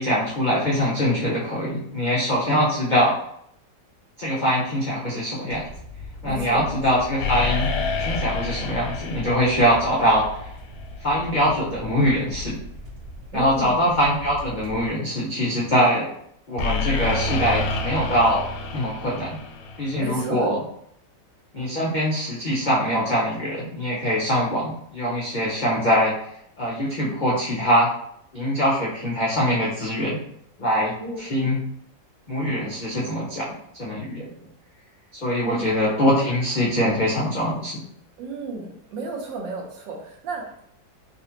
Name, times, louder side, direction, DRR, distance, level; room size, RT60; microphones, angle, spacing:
voice 1, 0.0-3.1 4.2-5.7 6.2-7.7 8.0-10.3 11.0-12.6 13.3-16.1 16.5-18.5 18.7-19.4 19.8-20.6 21.5-26.1 26.6-27.9 28.3-30.2 30.6-31.6 32.3-34.3 35.1-37.8, equal, 70° left, -6 dB, 0.4 m, -23 dB
sound 1, 5.5-14.9, left 1 dB, 40° right, 0.8 m, -40 dB
voice 2, 6.2-6.8 13.3-13.9 20.0-20.5 31.0-31.2 35.4-35.7 38.2-40.6, right 3 dB, 85° right, 1 dB, 1.5 m, -33 dB
sound 2, 7.2-10.9 16.6-20.3, left 3 dB, 85° left, 1.3 m, -28 dB
3.9 x 2.5 x 2.8 m, 0.70 s
omnidirectional pair, 2.0 m